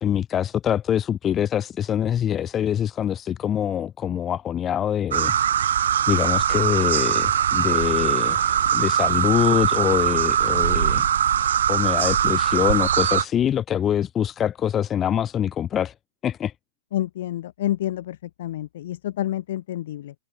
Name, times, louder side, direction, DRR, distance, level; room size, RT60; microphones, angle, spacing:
voice 1, 0.0-5.4 6.1-11.0 11.7-15.9 16.2-16.5, left 9 dB, 15° left, 1.0 m, -24 dB
sound 1, 5.1-13.2, right 9 dB, 70° right, 0.7 m, -21 dB
voice 2, 16.9-20.1, left 13 dB, 50° left, 5.7 m, -29 dB
hypercardioid pair, 165°, 0 cm